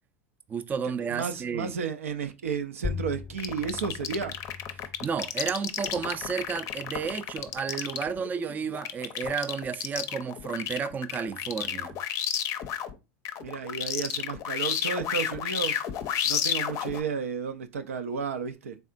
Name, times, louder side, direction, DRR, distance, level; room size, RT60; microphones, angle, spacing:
voice 1, 0.5-1.7 5.0-11.9, right 6 dB, 25° right, 0.4 m, -32 dB
voice 2, 1.0-4.3 13.4-15.8 16.2-18.8, right 6 dB, 90° right, 0.4 m, -32 dB
sound 1, 2.8-7.9, left 5 dB, 15° left, 0.7 m, -41 dB
sound 2, 3.4-12.9 13.2-17.0, left 9 dB, 45° left, 0.5 m, -31 dB
3.5 x 3.3 x 2.5 m
hypercardioid pair, 95°, 7 cm